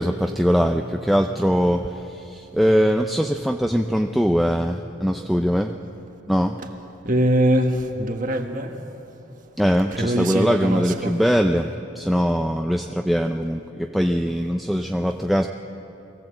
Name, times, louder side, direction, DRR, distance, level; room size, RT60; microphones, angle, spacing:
voice 1, 0.0-5.8 6.3-6.6 9.6-15.5, equal, ahead, 4 dB, 0.4 m, -21 dB
voice 2, 7.0-8.8 9.9-11.2, right 1 dB, 40° right, 5 dB, 1.4 m, -22 dB
22.0 x 16.5 x 7.7 m, 2.9 s
head